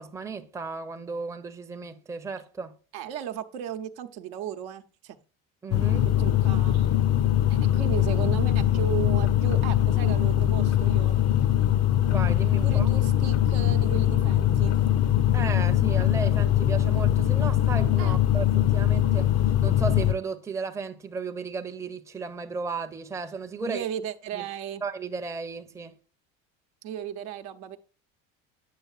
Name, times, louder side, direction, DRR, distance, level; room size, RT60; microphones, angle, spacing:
voice 1, 0.0-2.7 5.6-6.1 12.1-12.9 15.3-19.3 19.6-23.8 24.3-24.5 24.8-25.9, right 4 dB, 5° right, 0.6 m, -34 dB
voice 2, 2.9-5.2 6.2-6.9 7.5-11.2 12.6-14.8 18.0-18.2 23.6-24.8 26.8-27.8, right 10 dB, 75° right, 0.8 m, -35 dB
sound 1, 5.7-20.1, left 11 dB, 40° left, 0.6 m, -22 dB
9.4 x 6.4 x 2.4 m
hypercardioid pair, 80°, 42 cm